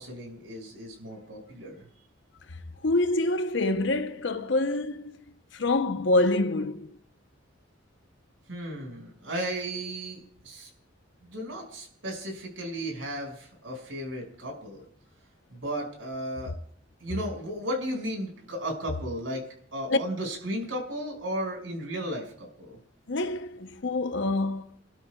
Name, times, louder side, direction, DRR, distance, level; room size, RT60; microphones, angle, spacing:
voice 1, 0.0-1.9 8.5-10.7 11.2-14.8 15.5-16.5 17.0-19.4 19.7-22.8, right 1 dB, 85° right, 5.9 m, -35 dB
voice 2, 2.8-5.2 5.5-7.0 19.9-20.0 23.1-24.7, left 2 dB, 70° left, 0.8 m, -26 dB
30.0 x 12.0 x 2.4 m
head